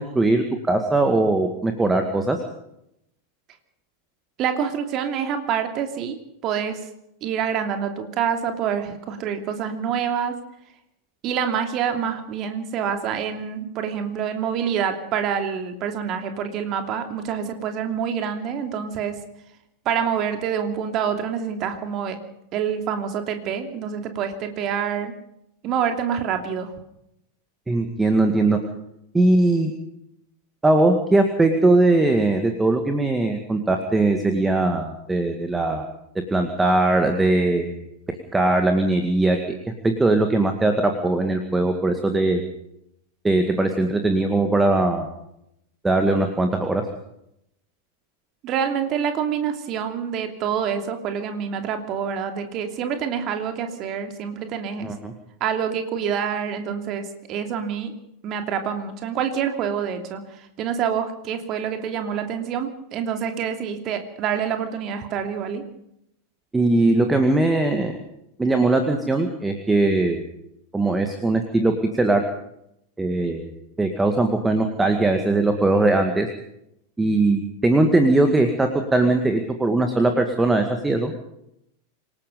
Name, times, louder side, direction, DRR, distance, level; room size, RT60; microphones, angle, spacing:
voice 1, 0.0-2.4 27.7-28.6 29.1-29.7 30.6-35.9 36.3-37.8 38.3-39.6 39.8-42.4 43.2-45.1 45.8-46.8 54.8-55.1 66.5-68.0 68.4-70.2 70.7-72.2 73.0-76.3 77.0-81.1, right 2 dB, 10° right, 5 dB, 2.1 m, -20 dB
voice 2, 4.4-6.8 7.2-10.4 11.2-19.2 19.8-22.2 22.5-25.1 25.6-26.7 48.4-54.8 55.4-57.9 58.2-65.6, right 8 dB, 35° right, 6 dB, 2.9 m, -26 dB
27.0 x 18.0 x 5.4 m, 0.79 s
figure-of-eight pair, 90°, 0 cm